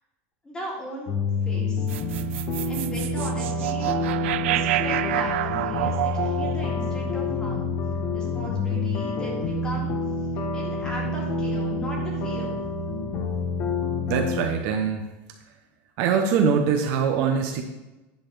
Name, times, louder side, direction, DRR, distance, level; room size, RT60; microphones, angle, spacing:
voice 1, 0.4-1.1 1.5-1.9 2.7-4.0 4.4-7.7 8.1-9.9 10.5-12.6, equal, 10° left, -3 dB, 2.2 m, -37 dB
sound 1, 1.1-14.5, left 3 dB, 40° left, 1.2 m, -28 dB
sound 2, 1.9-8.2, right 15 dB, 90° right, 0.4 m, -29 dB
voice 2, 14.1-15.0 16.0-17.6, right 6 dB, 45° right, 4 dB, 0.9 m, -23 dB
10.0 x 4.1 x 6.7 m, 1.0 s
supercardioid pair, 175°, 7 cm